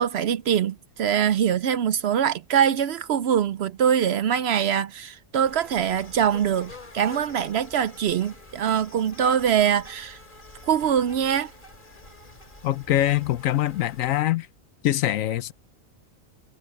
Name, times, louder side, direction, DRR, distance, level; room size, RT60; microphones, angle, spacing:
voice 1, 0.0-10.2 10.7-11.5, right 9 dB, 65° right, 0.7 m, -23 dB
sound 1, 5.4-14.2, left 2 dB, 40° left, 2.8 m, -46 dB
voice 2, 12.6-14.5 14.8-15.5, left 13 dB, 80° left, 1.1 m, -23 dB
omnidirectional pair, 1.4 m